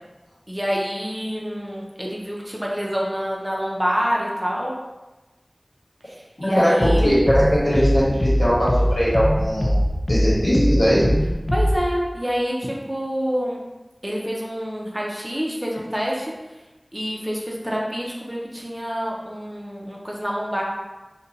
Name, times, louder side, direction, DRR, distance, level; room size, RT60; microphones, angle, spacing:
voice 1, 0.5-4.7 6.1-7.1 11.5-13.6 14.0-16.3 16.9-20.6, equal, 15° right, -3 dB, 0.6 m, -27 dB
voice 2, 6.4-9.8 10.1-11.1, equal, 70° left, -8 dB, 1.2 m, -20 dB
sound 1, 6.8-11.8, equal, 45° left, 0.3 m, -21 dB
2.7 x 2.2 x 3.9 m, 1.1 s
wide cardioid pair, 45°, 0 cm